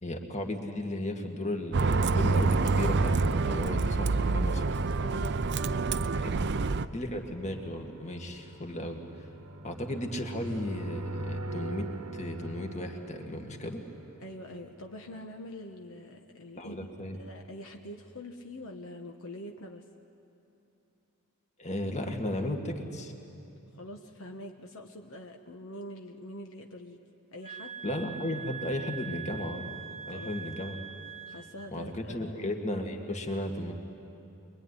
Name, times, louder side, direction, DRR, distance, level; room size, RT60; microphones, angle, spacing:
voice 1, 0.0-4.7 6.1-6.4 6.9-9.0 9.6-13.8 16.6-17.2 21.6-23.1 27.8-29.7 30.1-30.8 31.7-33.7, left 1 dB, 30° left, 3 dB, 2.1 m, -35 dB
Bus, 1.7-6.9, right 3 dB, 50° right, 0.6 m, -27 dB
voice 2, 5.0-5.4 6.3-6.6 14.2-16.8 17.1-19.9 23.7-27.0 27.3-27.8 30.1-30.3 31.3-32.4, left 1 dB, 65° left, 3 dB, 1.3 m, -44 dB
sound 1, 6.8-15.1, right 1 dB, 85° right, 1.3 m, -43 dB
sound 2, 27.4-31.7, right 7 dB, 25° right, 0.9 m, -42 dB
25.0 x 23.0 x 9.9 m, 2.9 s
head